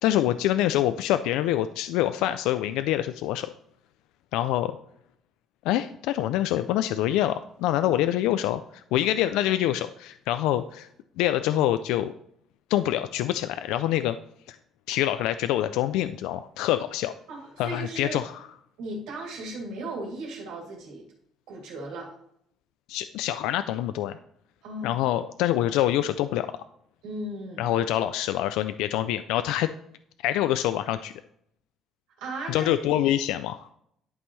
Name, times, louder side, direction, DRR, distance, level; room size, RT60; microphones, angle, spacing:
voice 1, 0.0-3.5 4.3-4.8 5.6-10.9 11.2-12.1 12.7-14.2 14.5-14.6 14.9-17.1 17.6-18.3 22.9-24.2 24.8-26.5 27.6-29.7 30.2-31.1 32.5-33.7, left 13 dB, 90° left, 11 dB, 0.3 m, -25 dB
voice 2, 17.3-18.2 18.8-21.1 21.5-22.1 24.6-25.0 27.0-27.6 32.2-32.9, right 2 dB, 80° right, -1 dB, 2.7 m, -36 dB
11.5 x 5.4 x 3.2 m, 0.71 s
cardioid pair, 180°, 0 cm